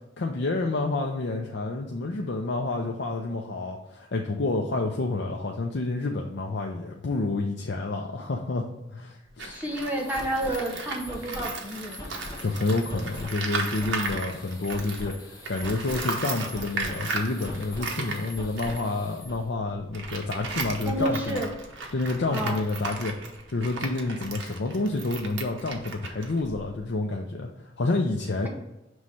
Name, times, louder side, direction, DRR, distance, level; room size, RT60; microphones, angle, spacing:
voice 1, 0.2-8.6 8.9-9.6 12.4-21.4 21.9-28.5, left 2 dB, 60° left, 1 dB, 0.6 m, -29 dB
Tools, 9.3-15.1 15.4-26.9, right 3 dB, 75° right, 1.0 m, -36 dB
voice 2, 9.5-12.3 20.8-21.5 22.3-22.6, right 1 dB, 10° right, -1 dB, 0.9 m, -30 dB
sound 1, 9.6-19.4, left 1 dB, 20° left, 1.1 m, -42 dB
6.2 x 3.2 x 5.5 m, 0.97 s
head